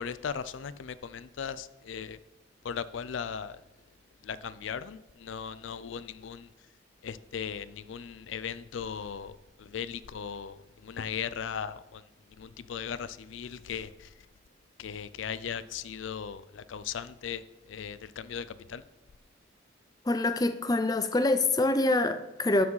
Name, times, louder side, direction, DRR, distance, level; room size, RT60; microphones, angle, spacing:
voice 1, 0.0-2.2 2.6-3.6 4.2-6.5 7.0-12.0 12.4-14.1 14.8-18.8, left 7 dB, 80° left, 15 dB, 0.4 m, -38 dB
voice 2, 20.1-22.6, left 2 dB, 20° left, 10 dB, 0.4 m, -25 dB
12.5 x 4.8 x 5.5 m, 0.97 s
head